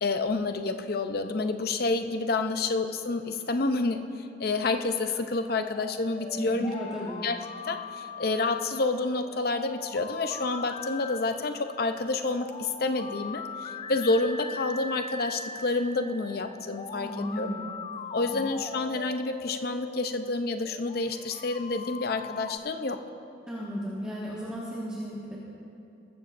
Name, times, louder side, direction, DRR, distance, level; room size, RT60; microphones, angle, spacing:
voice 1, 0.0-4.1 4.4-6.7 7.2-7.3 7.6-17.5 18.1-23.0, left 3 dB, 60° left, 8 dB, 0.7 m, -29 dB
sound 1, 5.4-22.6, left 4 dB, 30° left, 0.3 m, -41 dB
voice 2, 6.3-7.2 16.9-17.6 18.3-18.4 23.5-25.4, equal, 5° right, -9 dB, 1.7 m, -35 dB
20.5 x 14.0 x 2.6 m, 2.6 s
head